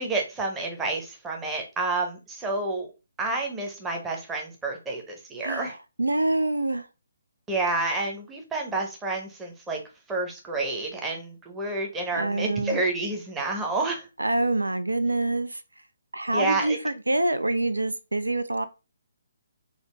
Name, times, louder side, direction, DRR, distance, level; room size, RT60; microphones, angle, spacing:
voice 1, 0.0-2.9 3.2-5.7 7.5-9.8 10.1-14.1 16.3-16.8, right 2 dB, 10° right, 0.7 m, -29 dB
voice 2, 5.4-6.8 12.1-12.8 14.2-15.6 16.1-18.7, right 2 dB, 85° right, 0.3 m, -26 dB
3.8 x 2.0 x 3.2 m
figure-of-eight pair, 140°, 0 cm